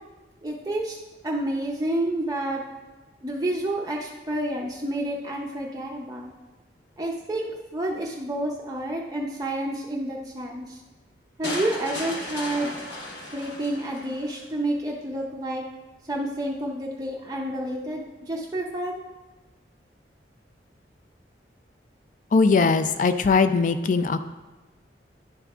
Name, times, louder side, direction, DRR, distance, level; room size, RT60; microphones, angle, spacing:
voice 1, 0.4-1.0 1.2-2.6 3.2-6.3 7.0-10.8 11.4-12.7 13.3-15.6 16.0-19.0, right 1 dB, 20° right, -2 dB, 0.5 m, -29 dB
sound 1, 11.4-14.4, left 1 dB, 80° left, 1.3 m, -35 dB
voice 2, 22.3-24.2, left 4 dB, 45° left, 11 dB, 0.4 m, -20 dB
11.0 x 3.6 x 3.5 m, 1.2 s
head